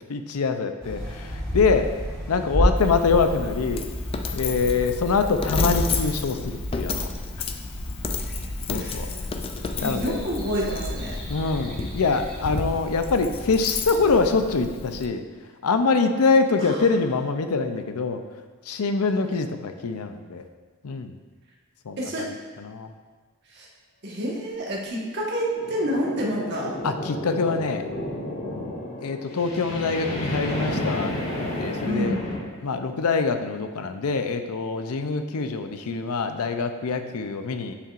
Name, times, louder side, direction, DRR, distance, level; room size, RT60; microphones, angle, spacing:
voice 1, 0.1-1.9 2.3-3.8 4.3-7.1 8.7-9.1 9.8-10.2 11.3-15.2 15.6-18.2 18.7-20.4 20.8-21.1 21.9-22.3 22.6-22.9 26.8-27.8 29.0-31.1 31.6-32.2 32.6-37.7, left 4 dB, 85° left, 8 dB, 0.5 m, -24 dB
sound 1, 0.8-14.2, equal, 5° left, 2.0 m, -32 dB
Coin (dropping), 2.8-15.1, left 4 dB, 25° left, 0.3 m, -32 dB
voice 2, 8.7-9.1 9.8-11.1 16.6-16.8 22.0-22.3 23.5-23.7 24.0-26.7 31.8-32.4, equal, 50° right, -3 dB, 1.5 m, -28 dB
sound 2, 24.7-32.4, left 1 dB, 65° left, 2.3 m, -32 dB
8.4 x 7.4 x 2.5 m, 1.4 s
head